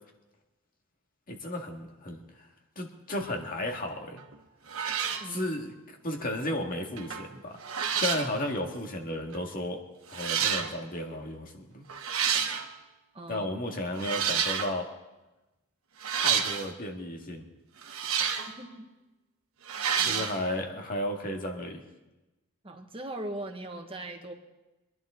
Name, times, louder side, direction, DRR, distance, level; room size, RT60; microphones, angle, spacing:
voice 1, 1.3-2.2 2.8-4.2 5.3-7.6 8.0-9.8 10.1-11.8 13.3-14.9 16.2-17.4 20.0-21.8, left 1 dB, 40° left, 2 dB, 2.0 m, -33 dB
sound 1, 4.2-4.3 4.7-5.3 7.0-7.3 7.6-8.3 9.3-9.4 10.1-10.7 11.9-12.7 14.0-14.8 16.0-16.7 17.8-18.6 19.7-20.4, right 7 dB, 75° right, 1.4 m, -29 dB
voice 2, 13.1-13.5 18.6-18.9 20.0-20.3 22.6-24.3, right 1 dB, 25° right, 3 dB, 1.5 m, -40 dB
25.0 x 11.0 x 3.8 m, 1.1 s
head